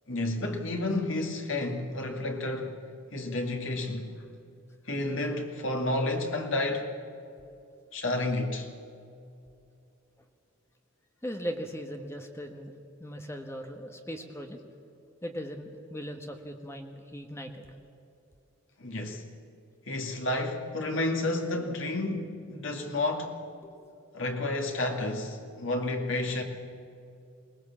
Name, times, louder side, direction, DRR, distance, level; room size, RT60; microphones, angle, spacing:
voice 1, 0.1-2.8 3.1-4.1 4.9-6.9 7.9-8.7 18.8-19.2 19.9-23.4 24.1-26.4, left 2 dB, 70° left, 2.3 m, -31 dB
voice 2, 11.2-12.7 13.0-14.6 15.2-17.7 22.7-22.8 23.6-23.8, equal, 15° left, 1.3 m, -39 dB
22.5 x 19.0 x 7.3 m
head